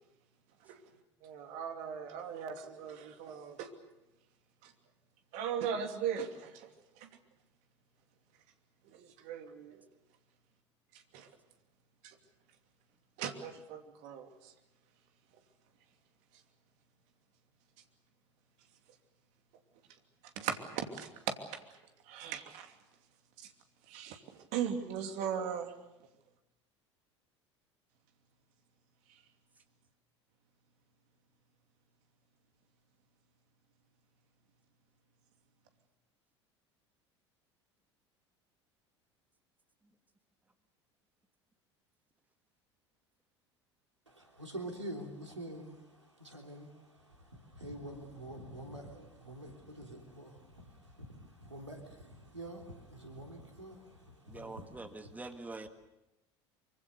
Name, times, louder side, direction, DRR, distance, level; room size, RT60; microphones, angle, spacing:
voice 1, 1.2-3.7 4.6-4.7 5.3-6.7 7.0-7.1 8.8-9.8 10.9-11.3 12.0-12.2 13.2-14.5 20.4-21.6 22.1-22.7 23.4-23.5 23.9-25.7 29.1-29.2, right 8 dB, 50° right, 5 dB, 2.8 m, -39 dB
voice 2, 44.1-54.6, right 1 dB, 85° right, 2 dB, 3.3 m, -47 dB
voice 3, 54.2-55.7, right 2 dB, 10° right, 7 dB, 1.7 m, -45 dB
24.5 x 24.5 x 6.8 m, 0.95 s
figure-of-eight pair, 70°, 15 cm